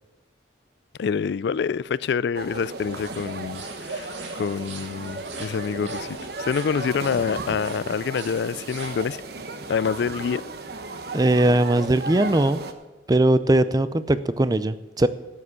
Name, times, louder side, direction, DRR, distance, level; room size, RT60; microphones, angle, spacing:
voice 1, 1.0-9.2 9.7-10.4, left 6 dB, 60° left, 0.3 m, -27 dB
sound 1, 2.3-12.7, right 2 dB, 55° right, 1.0 m, -35 dB
sound 2, 2.8-9.0, right 5 dB, 70° right, 2.0 m, -44 dB
voice 2, 11.1-12.6 13.1-15.1, right 1 dB, 20° right, 0.5 m, -20 dB
12.5 x 7.6 x 8.3 m
head